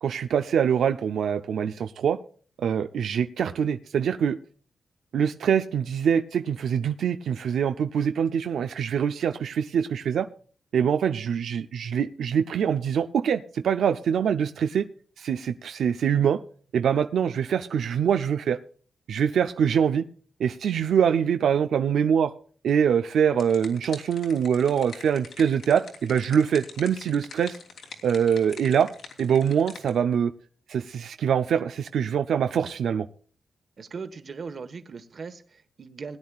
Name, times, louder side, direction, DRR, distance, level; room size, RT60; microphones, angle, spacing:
voice 1, 0.0-2.2 2.6-4.4 5.1-10.3 10.7-14.9 15.2-16.4 16.7-18.6 19.1-20.1 20.4-22.3 22.6-27.6 28.0-28.9 29.2-30.3 30.7-33.1, right 8 dB, 85° right, 8 dB, 0.5 m, -24 dB
sound 1, 23.3-29.9, left 4 dB, 70° left, 3.0 m, -45 dB
voice 2, 33.8-36.2, right 5 dB, 45° right, 9 dB, 1.3 m, -39 dB
20.5 x 10.5 x 2.4 m, 0.44 s
wide cardioid pair, 145°, 0 cm